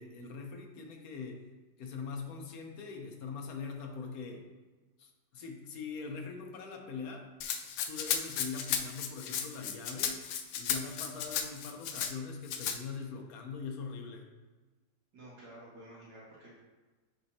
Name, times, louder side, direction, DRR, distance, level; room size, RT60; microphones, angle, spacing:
voice 1, 0.0-1.4 1.8-4.4 5.0-7.3 7.9-10.2 10.5-14.2, left 5 dB, 60° left, 2 dB, 1.1 m, -42 dB
Rattle (instrument), 7.4-12.1 12.5-12.8, left 8 dB, 80° left, 1.3 m, -34 dB
voice 2, 15.1-16.6, right 1 dB, 70° right, -7 dB, 2.5 m, -51 dB
7.7 x 5.1 x 2.7 m, 1.3 s
omnidirectional pair, 2.0 m